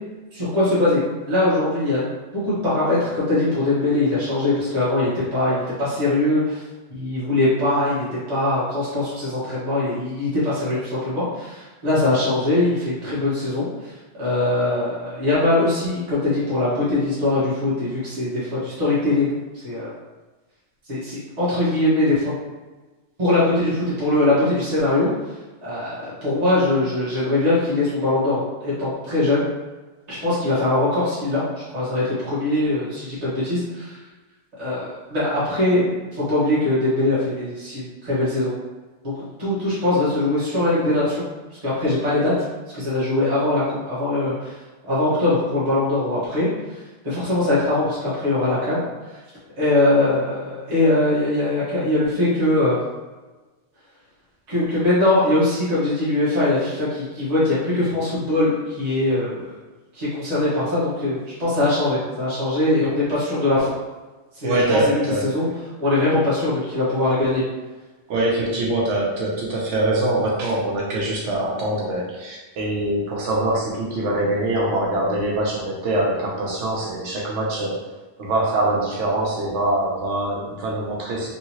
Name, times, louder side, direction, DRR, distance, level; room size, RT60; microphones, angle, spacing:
voice 1, 0.3-2.0 2.3-6.6 6.9-19.9 20.9-22.3 23.2-25.1 25.6-29.4 30.1-31.4 31.7-34.0 34.6-38.5 39.0-39.1 39.4-41.2 41.6-42.3 42.7-44.6 44.8-48.8 49.6-52.8 54.5-59.4 59.9-63.7 64.3-65.5 65.8-67.4, left 2 dB, 35° right, -10 dB, 1.1 m, -21 dB
voice 2, 64.4-65.3 68.1-77.8 78.2-81.3, right 1 dB, 85° right, -3 dB, 1.0 m, -23 dB
3.1 x 2.7 x 2.9 m, 1.2 s
omnidirectional pair, 1.2 m